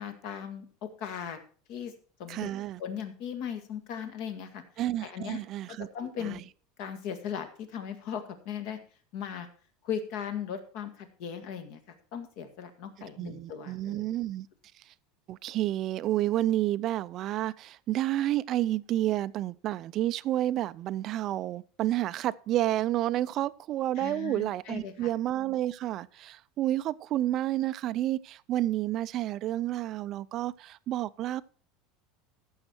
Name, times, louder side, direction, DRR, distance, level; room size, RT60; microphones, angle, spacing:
voice 1, 0.0-1.4 1.7-1.9 2.2-4.6 5.0-5.4 5.7-6.4 6.8-8.8 9.1-9.5 9.8-14.1 24.0-25.1, left 8 dB, 55° left, 1.8 m, -38 dB
voice 2, 2.3-2.8 4.8-5.9 6.2-6.4 13.2-14.5 15.3-31.4, right 13 dB, 35° right, 0.4 m, -30 dB
15.0 x 6.4 x 4.4 m
supercardioid pair, 165°, 0 cm